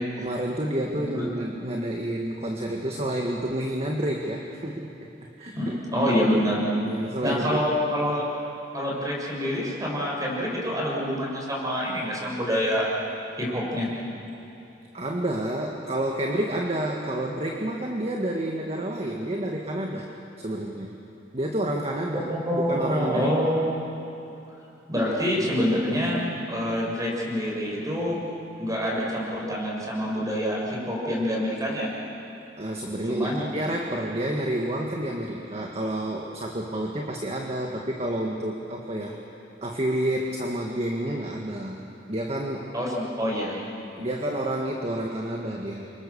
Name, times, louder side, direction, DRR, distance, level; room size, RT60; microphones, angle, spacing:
voice 1, 0.2-5.1 5.4-5.8 6.8-7.7 14.9-20.1 20.4-20.9 21.3-23.5 32.6-39.2 39.6-41.8 42.1-42.7 44.0-45.9, right 1 dB, 35° right, 0 dB, 1.9 m, -29 dB
voice 2, 5.5-6.7 7.2-8.2 8.7-12.8 13.3-13.9 22.3-23.7 24.9-28.2 28.6-31.9 33.1-33.4 42.7-43.6, equal, 20° right, -3 dB, 6.5 m, -26 dB
29.5 x 25.5 x 7.2 m, 2.9 s
head